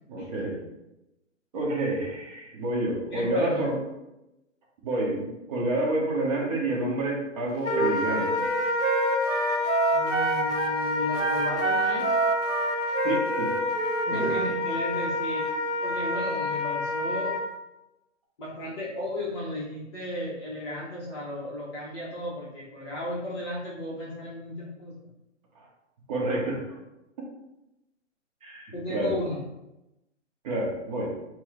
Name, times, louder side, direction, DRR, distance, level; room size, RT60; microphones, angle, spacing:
voice 1, 0.1-0.6 1.5-3.8 4.8-8.5 13.0-13.6 14.1-14.3 25.5-25.6 26.1-26.8 28.4-29.2 30.4-31.2, right 2 dB, 30° right, -3 dB, 0.9 m, -29 dB
voice 2, 3.1-3.7 9.9-12.1 14.1-15.5 15.8-17.3 18.4-25.0 28.7-29.4, left 1 dB, 20° left, -6 dB, 0.7 m, -34 dB
Wind instrument woodwind instrument, 7.6-17.5, left 3 dB, 65° left, 0.7 m, -28 dB
Wind instrument woodwind instrument 2, 7.7-10.8 11.1-14.6, right 4 dB, 85° right, 0.6 m, -28 dB
4.5 x 2.1 x 4.3 m, 0.94 s
hypercardioid pair, 155°, 38 cm